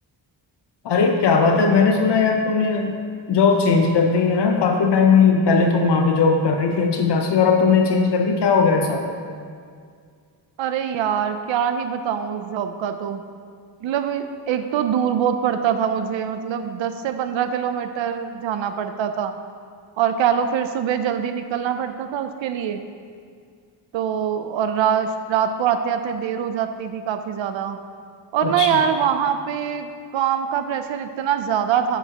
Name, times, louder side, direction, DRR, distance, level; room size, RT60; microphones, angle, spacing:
voice 1, 0.8-3.0 3.3-9.0 28.4-28.8, left 5 dB, 65° left, 3 dB, 0.7 m, -18 dB
voice 2, 10.6-13.2 13.8-19.3 20.0-22.8 23.9-27.8 28.3-32.0, right 8 dB, 85° right, 8 dB, 0.5 m, -23 dB
9.7 x 7.1 x 2.9 m, 2.1 s
wide cardioid pair, 170°, 45 cm